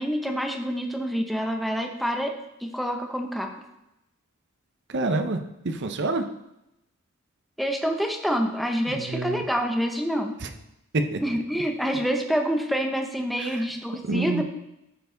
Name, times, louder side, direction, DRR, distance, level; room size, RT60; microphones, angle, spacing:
voice 1, 0.0-3.5 7.6-10.3 11.2-14.4, equal, ahead, 3 dB, 0.9 m, -27 dB
voice 2, 4.9-5.4 5.6-6.2 8.9-9.4 11.1-11.2 14.1-14.4, right 2 dB, 55° right, 7 dB, 0.8 m, -27 dB
13.0 x 4.7 x 3.9 m, 0.87 s
head